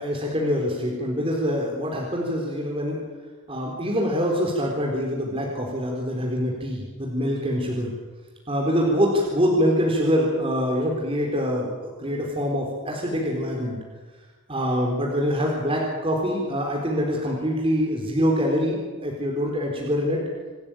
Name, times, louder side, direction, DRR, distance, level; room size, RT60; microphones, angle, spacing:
voice 1, 0.0-3.0 3.5-7.9 8.5-13.8 14.5-20.2, equal, 25° right, -1 dB, 4.0 m, -25 dB
26.5 x 14.0 x 9.0 m, 1.3 s
head